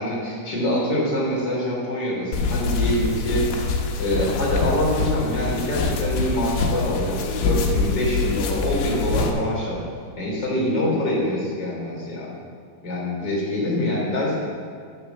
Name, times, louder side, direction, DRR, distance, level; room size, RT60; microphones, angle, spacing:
voice 1, 0.0-9.8 10.2-12.3 12.8-14.3, left 1 dB, 25° left, -5 dB, 3.2 m, -25 dB
sound 1, 2.3-9.3, left 4 dB, 85° left, 3.5 m, -25 dB
11.5 x 8.4 x 6.9 m, 2.1 s
omnidirectional pair, 5.3 m